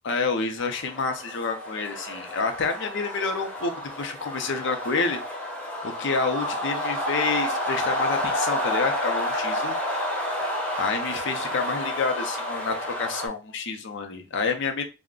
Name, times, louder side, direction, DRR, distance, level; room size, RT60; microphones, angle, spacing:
voice 1, 0.0-5.2 5.8-9.8 10.4-10.5 10.8-14.8, left 4 dB, 60° left, 0.5 m, -28 dB
sound 1, 0.6-13.3, left 1 dB, 10° left, 0.6 m, -30 dB
2.4 x 2.1 x 3.6 m
head